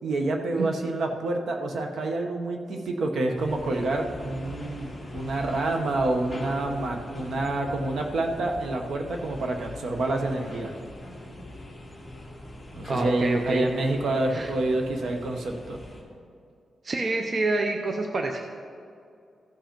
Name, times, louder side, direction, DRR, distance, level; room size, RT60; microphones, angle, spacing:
voice 1, 0.0-10.7 12.7-15.8, right 2 dB, 65° right, 3 dB, 1.0 m, -28 dB
sound 1, 3.3-16.0, left 1 dB, 5° left, 2.2 m, -41 dB
voice 2, 12.9-13.6 14.3-14.5 16.8-18.4, right 2 dB, 40° right, 3 dB, 0.6 m, -27 dB
15.0 x 5.2 x 5.2 m, 2.4 s
wide cardioid pair, 130°, 0 cm